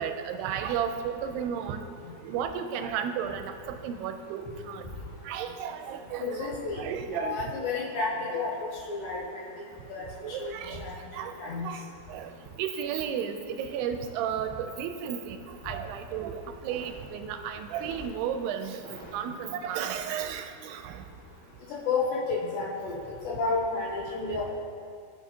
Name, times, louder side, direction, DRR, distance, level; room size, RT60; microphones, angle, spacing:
voice 1, 0.0-1.8 2.2-4.8 5.3-7.4 8.3-8.4 10.2-10.8 11.1-11.3 11.6-11.8 12.1-12.3 12.6-15.4 15.7-18.8 19.1-21.0, right 8 dB, 90° right, 7 dB, 2.6 m, -33 dB
voice 2, 6.2-6.8 7.1-8.5 8.9-9.4 9.9-10.1 10.4-10.5 10.8-11.7 21.9-23.0 23.2-24.6, left 4 dB, 70° left, -5 dB, 2.6 m, -31 dB
sound 1, 16.5-19.7, equal, 50° left, 0.5 m, -48 dB
15.0 x 5.5 x 2.8 m, 2.3 s
omnidirectional pair, 4.6 m